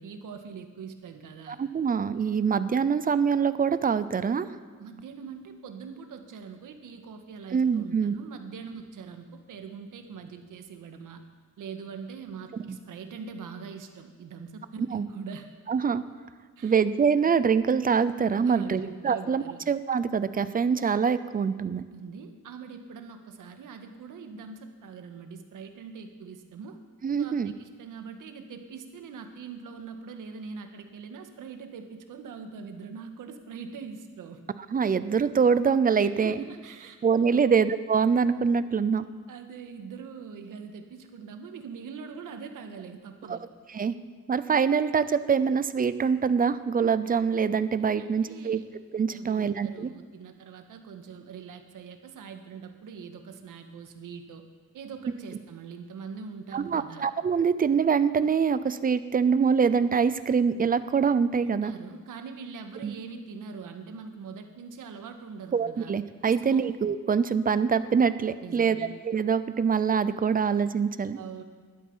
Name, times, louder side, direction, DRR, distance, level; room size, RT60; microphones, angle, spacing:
voice 1, 0.0-1.6 4.8-11.2 11.6-15.5 16.6-16.8 18.4-19.6 21.7-26.8 27.2-34.4 36.0-37.0 37.3-37.6 39.3-43.5 47.9-48.6 49.1-54.4 54.7-57.1 61.4-65.9 66.2-66.7 68.4-68.9 71.2-71.4, right 5 dB, 85° right, 6 dB, 1.7 m, -42 dB
voice 2, 1.5-4.5 7.5-8.1 14.9-15.1 15.7-16.0 16.6-21.8 27.0-27.5 34.7-36.3 37.0-39.0 43.3-43.4 43.7-43.9 44.3-48.6 48.9-49.9 56.5-61.7 62.8-62.9 65.5-71.2, right 6 dB, 30° right, 13 dB, 0.6 m, -24 dB
20.5 x 12.5 x 5.6 m, 1.5 s
wide cardioid pair, 175°, 31 cm